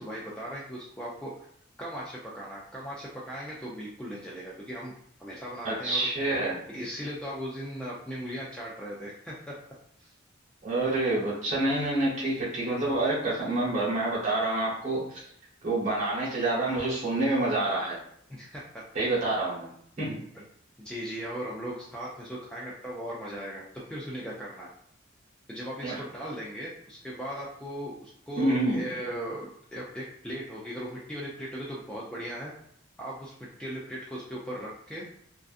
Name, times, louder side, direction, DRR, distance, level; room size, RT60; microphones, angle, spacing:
voice 1, 0.0-1.3 1.8-4.9 5.2-6.0 6.7-9.5 10.0-10.1 18.3-18.8 20.8-23.6 23.9-24.7 25.5-32.5 33.0-35.0, equal, 5° left, -5 dB, 0.3 m, -38 dB
voice 2, 5.6-6.6 10.6-15.3 15.6-18.0 18.9-19.7 20.0-20.2 25.8-26.0 28.3-28.8, right 2 dB, 35° right, -6 dB, 1.0 m, -27 dB
2.4 x 2.3 x 2.4 m, 0.68 s
head